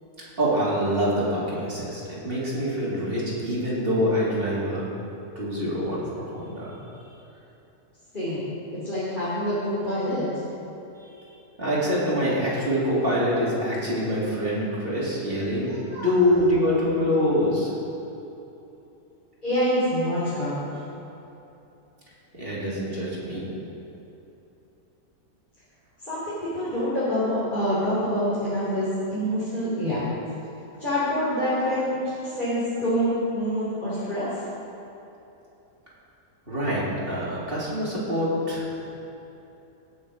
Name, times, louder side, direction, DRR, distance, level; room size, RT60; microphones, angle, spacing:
voice 1, 0.2-4.9 5.3-6.8 11.6-17.7 22.3-23.5 36.5-38.9, equal, 40° right, -7 dB, 3.2 m, -25 dB
voice 2, 8.1-10.4 15.6-16.1 19.4-20.8 26.0-30.1 30.8-34.3, equal, 35° left, -11 dB, 3.2 m, -26 dB
17.0 x 6.6 x 5.2 m, 3.0 s
omnidirectional pair, 1.6 m